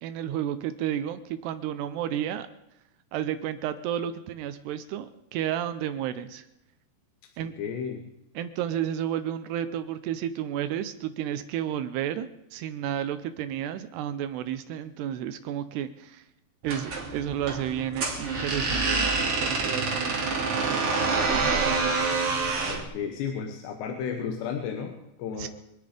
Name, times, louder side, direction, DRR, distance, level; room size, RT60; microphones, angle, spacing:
voice 1, 0.0-2.5 3.1-6.5 7.4-7.5 8.4-16.2 16.6-20.9 21.2-22.1 25.4-25.5, right 10 dB, 80° right, 11 dB, 2.7 m, -32 dB
voice 2, 7.6-8.1 22.7-25.5, left 7 dB, 80° left, 4 dB, 3.3 m, -33 dB
sound 1, 16.6-22.8, right 4 dB, 35° right, 3.0 m, -27 dB
25.0 x 10.0 x 5.1 m, 0.86 s
omnidirectional pair, 5.0 m